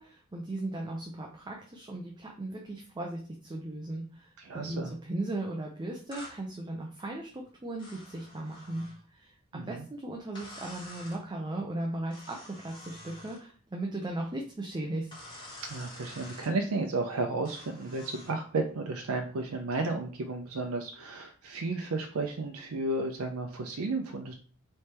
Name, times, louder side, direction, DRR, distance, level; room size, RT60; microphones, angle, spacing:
voice 1, 0.0-4.3 4.5-15.1, right 1 dB, 20° right, 0 dB, 0.5 m, -37 dB
voice 2, 4.4-4.9 9.5-9.8 15.7-24.3, right 3 dB, 80° right, 3 dB, 0.5 m, -33 dB
sound 1, 6.1-6.4 7.8-9.0 10.3-11.2 12.1-13.4 15.1-16.5 17.4-18.4, left 1 dB, 20° left, 1.4 m, -48 dB
3.4 x 3.2 x 4.3 m, 0.41 s
head